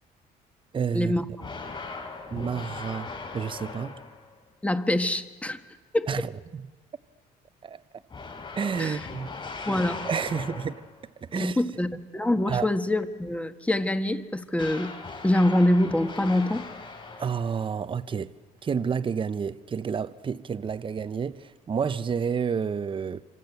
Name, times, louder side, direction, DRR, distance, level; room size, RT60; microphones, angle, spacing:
voice 1, 0.7-1.1 2.3-4.0 6.1-6.7 7.6-7.8 8.6-9.3 10.0-10.7 11.2-11.6 12.5-12.7 17.2-18.3 18.6-23.2, right 6 dB, 30° right, 0.9 m, -30 dB
sound 1, 1.4-4.4 8.1-11.0 14.5-17.6, left 4 dB, 30° left, 5.0 m, -39 dB
voice 2, 4.6-5.6 5.9-6.1 8.8-9.0 9.7-10.0 11.3-11.9 12.1-14.9 15.2-16.6, left 1 dB, 10° left, 1.5 m, -24 dB
27.0 x 26.0 x 8.3 m
cardioid pair, 110°, 17 cm